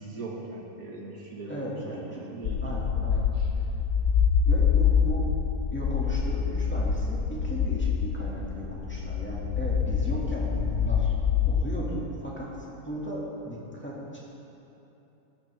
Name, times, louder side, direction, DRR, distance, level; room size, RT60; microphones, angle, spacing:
voice 1, 0.0-3.5, right 2 dB, 75° right, -2 dB, 2.0 m, -41 dB
voice 2, 1.5-2.3 2.6-3.3 4.4-5.3 5.7-11.2 11.5-12.5 12.8-14.2, equal, 10° left, -6 dB, 2.0 m, -36 dB
sound 1, 2.4-11.6, left 6 dB, 85° left, 0.4 m, -26 dB
15.0 x 12.0 x 3.5 m, 3.0 s
omnidirectional pair, 1.5 m